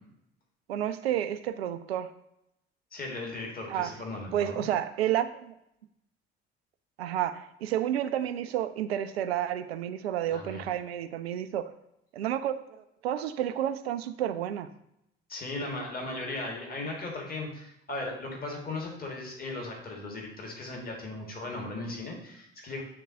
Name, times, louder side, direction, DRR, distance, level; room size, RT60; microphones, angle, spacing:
voice 1, 0.7-2.1 3.7-4.0 4.3-5.5 7.0-11.7 12.1-12.6 13.0-14.7, right 11 dB, 75° right, 10 dB, 0.5 m, -30 dB
voice 2, 2.9-4.7 10.3-10.7 15.3-22.8, left 2 dB, 30° left, -1 dB, 1.7 m, -37 dB
9.4 x 3.7 x 2.7 m, 0.79 s
figure-of-eight pair, 50°, 31 cm